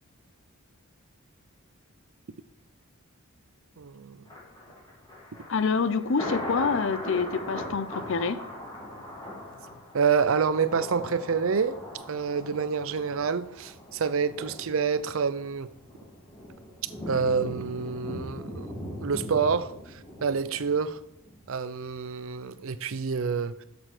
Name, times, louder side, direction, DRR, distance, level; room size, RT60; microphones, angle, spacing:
voice 1, 3.8-4.2 9.9-11.8 12.1-15.7 17.1-18.7 19.0-19.7 20.2-21.0 21.5-23.6, right 5 dB, 65° right, 0.5 m, -27 dB
Thunder, 4.3-21.4 21.7-21.8, left 1 dB, 20° left, 2.4 m, -40 dB
voice 2, 5.5-8.4, left 5 dB, 60° left, 0.6 m, -27 dB
7.9 x 6.9 x 6.0 m
head